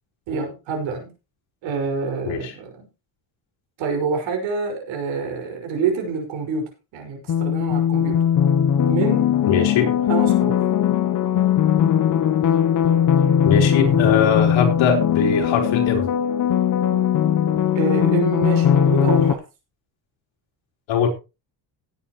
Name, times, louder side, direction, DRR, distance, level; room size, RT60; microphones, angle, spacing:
voice 1, 0.3-1.1 1.6-2.8 3.8-8.2 8.9-9.3 9.5-10.6 17.7-19.4, right 5 dB, 70° right, 5.8 m, -27 dB
sound 1, 7.3-19.3, left 9 dB, 40° left, 1.0 m, -19 dB
voice 2, 9.5-9.9 13.4-16.1 20.9-21.1, left 6 dB, 70° left, 4.4 m, -21 dB
17.0 x 9.0 x 3.1 m
cardioid pair, 170°, 46 cm